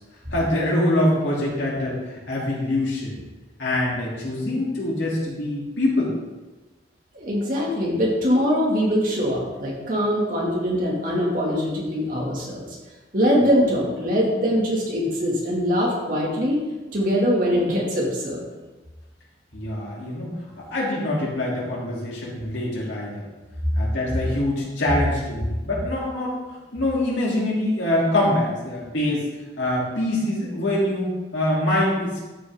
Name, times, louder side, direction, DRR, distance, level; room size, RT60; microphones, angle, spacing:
voice 1, 0.3-3.2 3.6-6.1 19.5-20.4 20.7-23.3 23.8-26.4 26.7-29.3 29.6-32.2, left 1 dB, 85° left, -5 dB, 3.1 m, -24 dB
voice 2, 7.1-12.7 13.1-16.6 16.9-18.4, equal, 45° right, -3 dB, 2.2 m, -22 dB
12.5 x 5.5 x 3.6 m, 1.2 s
head